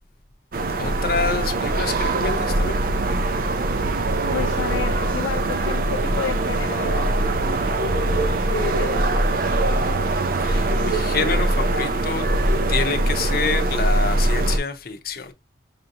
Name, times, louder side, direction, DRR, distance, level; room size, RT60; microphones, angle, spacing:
sound 1, 0.5-14.6, right 2 dB, 50° right, 0.5 m, -22 dB
voice 1, 0.8-2.8 10.4-12.3 12.7-15.3, left 5 dB, 50° left, 0.7 m, -27 dB
voice 2, 4.3-7.3 8.3-9.6, left 8 dB, 90° left, 0.3 m, -31 dB
5.6 x 2.8 x 2.6 m
head